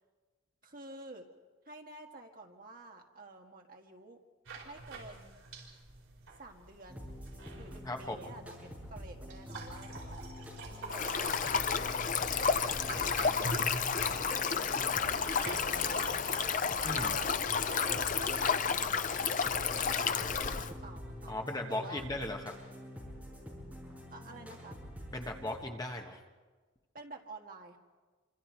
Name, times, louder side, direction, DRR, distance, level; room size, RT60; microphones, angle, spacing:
voice 1, 0.6-1.3 1.6-4.2 4.6-5.4 6.4-7.2 7.5-10.5 10.9-11.4 12.6-14.6 15.0-16.3 16.7-17.4 17.7-21.3 21.7-22.0 24.1-24.8 26.9-27.8, right 2 dB, 40° right, 2 dB, 1.8 m, -50 dB
sound 1, 4.4-20.1, right 2 dB, 85° right, 4.9 m, -47 dB
sound 2, 6.9-25.5, left 1 dB, 5° right, 6.4 m, -46 dB
voice 2, 7.8-8.2 16.8-17.2 21.3-22.5 25.1-26.2, left 1 dB, 20° left, 3 dB, 1.4 m, -37 dB
Stream, 10.9-20.7, left 6 dB, 40° left, 0.6 m, -31 dB
27.5 x 25.5 x 4.6 m, 1.4 s
head